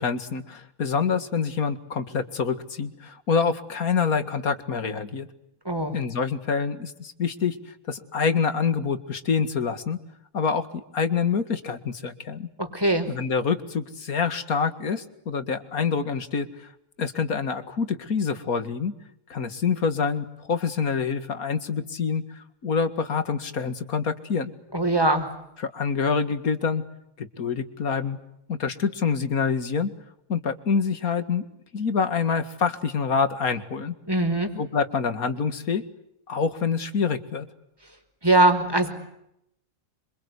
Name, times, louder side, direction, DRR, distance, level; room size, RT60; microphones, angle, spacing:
voice 1, 0.0-5.3 5.9-10.0 10.3-12.5 13.1-16.7 17.0-18.9 19.3-24.5 25.6-26.8 27.2-28.2 28.5-29.9 30.3-34.0 34.6-35.8 36.3-37.5, left 5 dB, 85° left, 11 dB, 2.4 m, -26 dB
voice 2, 5.6-6.0 12.6-13.1 24.7-25.3 34.1-34.5 38.2-38.9, right 2 dB, 15° right, 7 dB, 4.8 m, -21 dB
28.0 x 25.0 x 8.2 m, 0.79 s
omnidirectional pair, 1.5 m